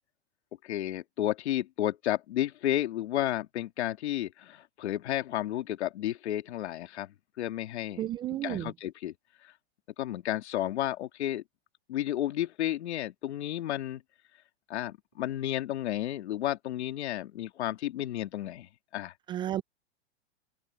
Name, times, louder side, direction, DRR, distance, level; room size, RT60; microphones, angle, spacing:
voice 1, 0.6-8.1 8.4-9.1 10.0-11.4 11.9-14.0 14.7-19.1, left 13 dB, 80° left, 2.8 m, -32 dB
voice 2, 8.0-8.7 19.3-19.6, right 12 dB, 15° right, 0.3 m, -32 dB
supercardioid pair, 135°, 33 cm